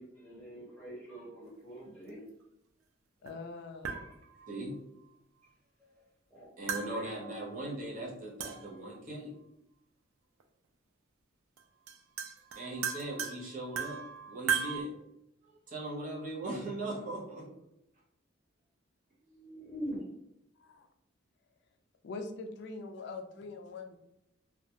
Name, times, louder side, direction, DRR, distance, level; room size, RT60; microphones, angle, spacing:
voice 1, 0.0-2.2 5.8-5.9 6.3-6.5 6.9-7.1 19.2-20.0, equal, 10° left, -10 dB, 0.9 m, -44 dB
voice 2, 3.2-4.0 20.6-20.9 22.0-24.0, left 3 dB, 55° left, 5 dB, 0.3 m, -43 dB
sound 1, 3.3-3.4 3.8-4.6 6.7-7.6 8.4-9.0 10.4-10.5 11.6-11.7 11.9-14.8, right 7 dB, 90° right, 0.3 m, -37 dB
voice 3, 6.6-9.3 12.6-14.0 14.3-14.9 15.7-17.5, right 1 dB, 40° right, -4 dB, 0.6 m, -39 dB
2.3 x 2.1 x 2.8 m, 0.83 s
head